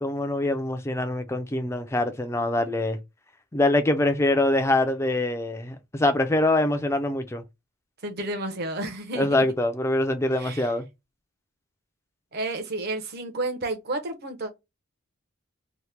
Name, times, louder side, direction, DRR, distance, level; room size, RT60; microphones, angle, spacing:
voice 1, 0.0-3.0 3.5-7.4 9.2-10.9, left 1 dB, 15° left, 0.3 m, -24 dB
voice 2, 8.0-9.4 10.4-10.7 12.3-14.5, right 2 dB, 50° right, 0.7 m, -31 dB
2.9 x 2.1 x 3.3 m
head